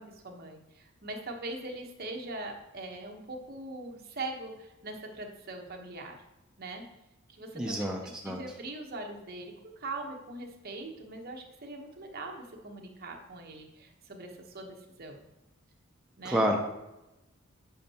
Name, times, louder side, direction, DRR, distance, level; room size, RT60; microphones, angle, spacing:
voice 1, 0.0-6.2 6.6-6.8 7.3-15.2 16.2-16.5, right 2 dB, 45° right, 2 dB, 1.0 m, -41 dB
voice 2, 7.5-8.4 16.2-16.7, equal, 5° right, 0 dB, 0.5 m, -28 dB
8.6 x 5.5 x 2.8 m, 0.97 s
head